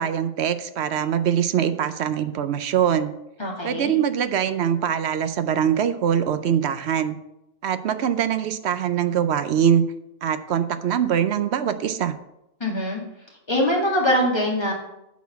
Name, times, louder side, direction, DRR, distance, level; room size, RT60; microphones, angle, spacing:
voice 1, 0.0-3.1 3.6-7.2 7.6-9.8 10.2-12.1, right 9 dB, 65° right, 11 dB, 0.7 m, -23 dB
voice 2, 3.4-3.9 12.6-13.0 13.5-14.7, equal, 20° left, -3 dB, 2.1 m, -22 dB
8.4 x 4.2 x 7.0 m, 0.86 s
omnidirectional pair, 1.4 m